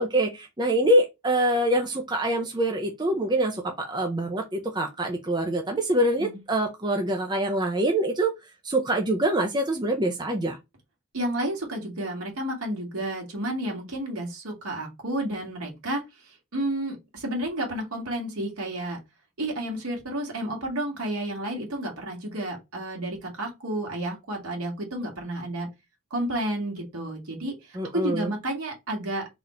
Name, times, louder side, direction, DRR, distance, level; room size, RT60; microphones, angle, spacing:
voice 1, 0.0-8.3 8.6-10.6 27.7-28.3, right 1 dB, 20° right, 0.5 m, -25 dB
voice 2, 11.1-19.0 19.4-25.7 26.1-29.3, right 1 dB, 80° right, 1.9 m, -31 dB
4.0 x 2.6 x 4.4 m
head